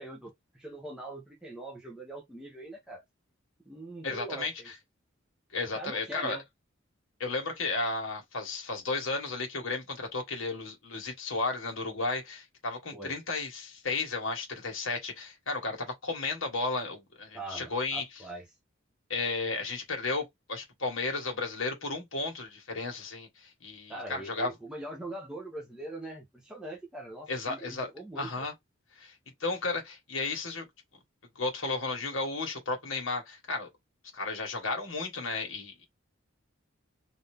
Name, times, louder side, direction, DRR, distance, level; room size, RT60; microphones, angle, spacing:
voice 1, 0.0-3.0 3.7-4.7 5.7-6.4 12.9-13.1 17.3-18.4 23.9-28.4, right 1 dB, 5° right, 0.9 m, -42 dB
voice 2, 4.0-4.7 5.5-6.4 7.2-18.0 19.1-24.5 27.3-27.9 28.2-28.5 28.9-29.1 29.4-30.7 31.3-33.7 34.1-35.9, left 3 dB, 80° left, 1.6 m, -33 dB
3.9 x 2.7 x 3.4 m
head